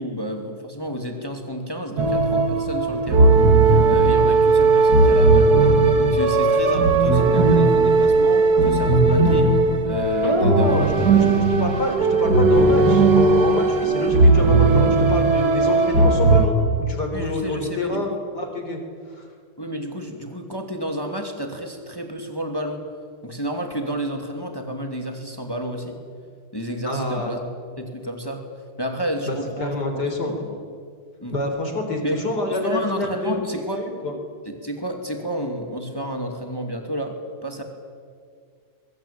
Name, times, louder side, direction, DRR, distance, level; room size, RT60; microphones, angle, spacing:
voice 1, 0.0-3.4 3.9-5.5 6.0-9.5 9.9-10.8 11.1-11.4 17.1-18.2 19.6-22.9 23.2-26.0 26.5-27.4 27.8-28.4 28.8-30.6 31.2-31.4 32.0-33.9 34.4-37.6, equal, 10° left, 4 dB, 2.5 m, -30 dB
sound 1, 2.0-16.5, right 3 dB, 55° right, 2.7 m, -17 dB
voice 2, 10.2-18.1 18.3-18.8 19.1-19.2 26.8-27.3 29.3-30.3 31.3-33.5 33.7-34.1, left 1 dB, 60° left, 3 dB, 4.5 m, -27 dB
25.0 x 22.5 x 8.8 m, 2.1 s
omnidirectional pair, 2.1 m